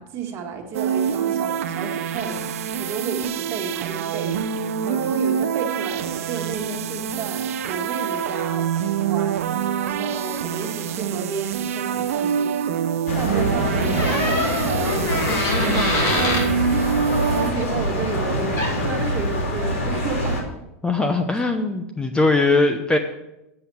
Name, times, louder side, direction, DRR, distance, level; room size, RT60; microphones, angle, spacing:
voice 1, 0.0-4.4 4.8-8.7 9.0-9.4 9.8-12.5 13.1-16.9 17.3-20.5, right 5 dB, 35° right, 3 dB, 1.8 m, -32 dB
sound 1, 0.7-17.5, right 8 dB, 80° right, 0.6 m, -26 dB
sound 2, 13.1-20.4, left 1 dB, 80° left, 2.6 m, -25 dB
Door, 13.9-16.5 18.3-18.4 18.6-18.9, left 2 dB, 40° left, 2.8 m, -24 dB
voice 2, 20.8-23.0, left 3 dB, 10° left, 7 dB, 0.7 m, -20 dB
7.8 x 7.0 x 6.9 m, 0.89 s
hypercardioid pair, 120°, 8 cm